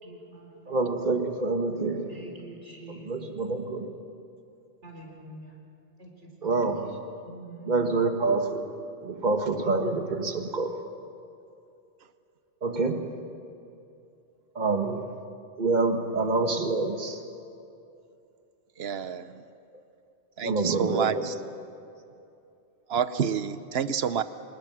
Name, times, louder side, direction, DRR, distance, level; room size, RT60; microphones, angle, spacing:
voice 1, 0.0-0.8 2.0-3.4 4.8-5.6 6.0-6.8 7.2-7.9, right 1 dB, 80° right, 0 dB, 4.0 m, -46 dB
voice 2, 0.7-2.1 2.9-3.9 6.4-7.0 7.7-8.7 9.0-10.8 12.6-13.1 14.6-15.1 15.6-17.2 20.4-21.3, right 3 dB, 40° right, 5 dB, 1.6 m, -27 dB
voice 3, 18.8-19.4 20.4-21.3 22.9-24.2, right 7 dB, 65° right, 13 dB, 1.0 m, -28 dB
25.5 x 20.5 x 6.2 m, 2.7 s
omnidirectional pair, 1.2 m